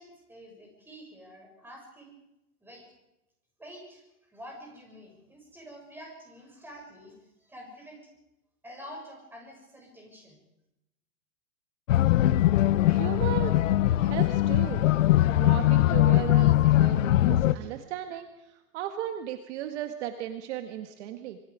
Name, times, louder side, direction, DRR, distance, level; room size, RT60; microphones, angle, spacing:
voice 1, 0.0-2.1 2.6-2.9 3.6-4.0 4.3-8.1 8.6-10.4, equal, 5° right, 0 dB, 6.8 m, -47 dB
sound 1, 11.9-17.6, left 14 dB, 55° left, 0.9 m, -21 dB
voice 2, 12.8-13.6 14.0-14.8 15.4-21.4, right 11 dB, 45° right, 6 dB, 1.7 m, -36 dB
26.0 x 23.5 x 5.0 m, 0.90 s
hypercardioid pair, 155°, 45 cm